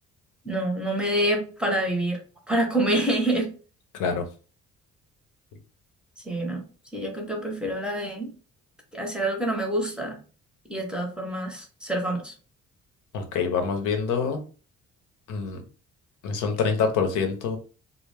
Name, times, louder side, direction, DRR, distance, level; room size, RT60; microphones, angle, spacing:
voice 1, 0.4-2.2 2.5-3.5 6.2-6.7 6.9-8.3 8.9-10.2 10.7-12.3, right 1 dB, 5° right, 1 dB, 0.6 m, -27 dB
voice 2, 3.9-4.3 13.1-14.4 15.3-15.6 16.2-17.6, left 5 dB, 90° left, 6 dB, 0.7 m, -26 dB
2.2 x 2.0 x 3.2 m, 0.38 s
cardioid pair, 90°, 30 cm